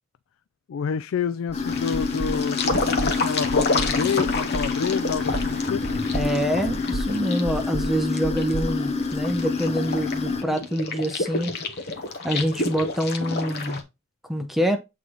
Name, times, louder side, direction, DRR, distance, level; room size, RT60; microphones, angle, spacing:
voice 1, 0.7-5.8, left 6 dB, 75° left, 0.3 m, -28 dB
sound 1, 1.5-10.4, left 4 dB, 35° left, 0.8 m, -28 dB
sound 2, 1.5-1.6 1.9-2.4 2.7-3.1 3.5-3.9 4.3-4.7 5.1-5.5 5.8-6.3 6.7-7.1 7.4-7.9 8.2-9.4, right 2 dB, 35° right, 0.7 m, -31 dB
sound 3, 1.7-13.8, left 3 dB, 55° left, 1.1 m, -29 dB
voice 2, 6.1-11.5 12.2-13.8 14.3-14.8, equal, ahead, 0.8 m, -26 dB
8.1 x 3.8 x 3.1 m
head